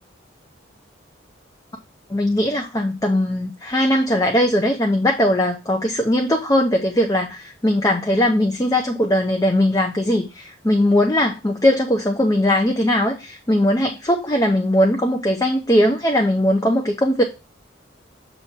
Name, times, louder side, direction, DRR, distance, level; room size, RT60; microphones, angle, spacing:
voice 1, 2.1-17.2, left 1 dB, 15° left, 3 dB, 0.5 m, -19 dB
6.6 x 3.0 x 5.9 m, 0.29 s
head